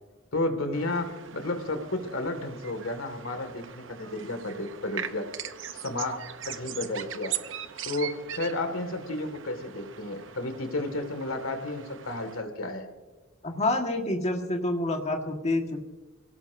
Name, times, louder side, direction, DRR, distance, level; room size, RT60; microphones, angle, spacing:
voice 1, 0.3-5.4 5.7-6.2 6.4-7.4 7.9-12.9, left 2 dB, 85° left, 7 dB, 2.1 m, -32 dB
sound 1, 0.7-12.4, right 9 dB, 65° right, 0.8 m, -41 dB
voice 2, 13.4-15.8, left 2 dB, 35° left, 3 dB, 1.6 m, -28 dB
27.5 x 17.5 x 2.7 m, 1.2 s
head